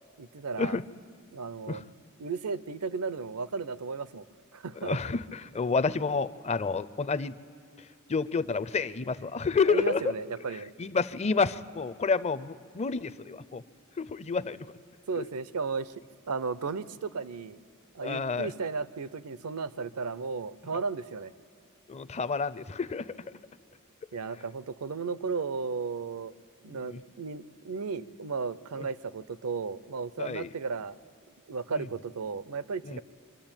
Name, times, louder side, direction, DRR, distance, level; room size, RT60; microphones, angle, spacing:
voice 1, 0.2-0.8 1.3-1.8 2.2-4.3 4.5-5.0 9.6-10.7 15.1-15.9 16.3-17.6 17.9-21.3 24.1-26.3 26.6-31.0 31.5-33.0, right 4 dB, 80° right, 17 dB, 0.6 m, -34 dB
voice 2, 4.8-7.3 8.1-10.0 10.8-13.6 14.0-14.6 18.0-18.5 21.9-23.1 26.7-27.0 30.2-30.5 31.7-31.8 32.8-33.0, left 4 dB, 30° left, 15 dB, 0.5 m, -29 dB
24.5 x 13.5 x 8.9 m, 2.6 s
head